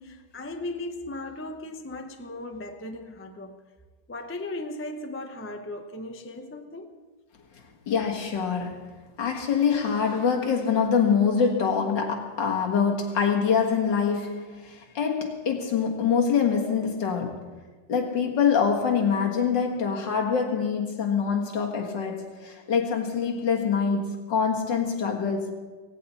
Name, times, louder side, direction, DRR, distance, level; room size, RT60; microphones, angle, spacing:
voice 1, 0.0-3.6 4.1-6.9, left 2 dB, 15° left, 0.5 m, -37 dB
voice 2, 7.9-8.9 9.2-17.6 17.9-25.5, left 6 dB, 70° left, 2.3 m, -25 dB
17.0 x 16.5 x 4.2 m
omnidirectional pair, 2.0 m